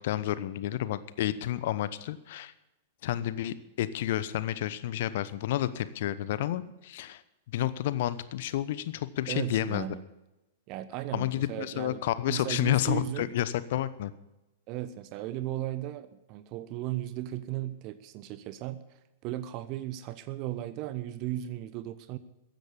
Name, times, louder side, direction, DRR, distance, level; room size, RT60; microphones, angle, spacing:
voice 1, 0.0-2.5 3.0-7.2 7.5-9.9 11.1-14.1, left 13 dB, 55° left, 15 dB, 0.9 m, -30 dB
voice 2, 9.3-10.0 10.7-12.0 12.3-13.3 14.7-18.8 19.2-22.2, right 14 dB, 40° right, 13 dB, 1.0 m, -36 dB
15.0 x 10.5 x 7.1 m, 0.97 s
figure-of-eight pair, 100°, 0 cm